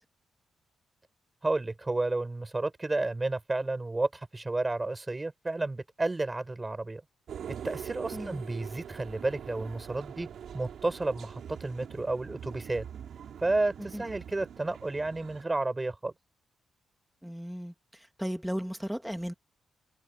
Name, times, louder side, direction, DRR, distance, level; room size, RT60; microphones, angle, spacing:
voice 1, 1.4-7.0 7.5-10.3 10.5-12.9 13.4-16.1, right 2 dB, 15° right, 6.0 m, -31 dB
sound 1, 7.3-15.4, right 8 dB, 65° right, 4.0 m, -43 dB
voice 2, 8.1-8.4 13.9-14.0 17.2-19.3, equal, ahead, 1.9 m, -36 dB
cardioid pair, 130°, 0 cm